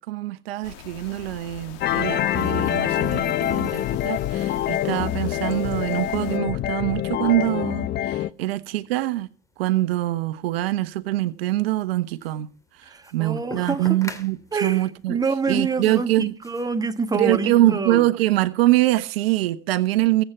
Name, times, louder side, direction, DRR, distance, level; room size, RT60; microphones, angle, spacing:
voice 1, 0.1-9.3 9.6-12.5 12.8-15.2 15.5-16.3 17.1-20.2, right 16 dB, 70° right, 1.1 m, -24 dB
sound 1, 0.6-6.4, left 10 dB, 55° left, 2.7 m, -42 dB
sound 2, 1.8-8.3, left 12 dB, 35° left, 0.7 m, -25 dB
sound 3, 2.4-17.4, left 2 dB, 10° left, 2.9 m, -48 dB
voice 2, 12.8-14.0 14.5-18.1, right 4 dB, 10° right, 1.7 m, -27 dB
23.5 x 8.2 x 4.5 m
hypercardioid pair, 105°, 31 cm